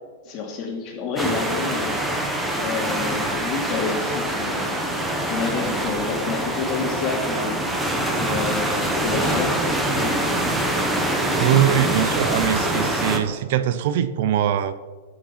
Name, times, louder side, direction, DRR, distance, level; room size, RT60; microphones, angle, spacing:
voice 1, 0.3-2.3 2.6-4.9 5.2-7.6 8.1-10.2, left 4 dB, 30° left, 1 dB, 2.6 m, -29 dB
sound 1, 1.2-13.2, right 1 dB, 5° right, 1.2 m, -24 dB
voice 2, 11.4-14.7, right 10 dB, 55° right, 12 dB, 0.6 m, -22 dB
13.0 x 6.6 x 5.7 m, 1.4 s
supercardioid pair, 155°, 0 cm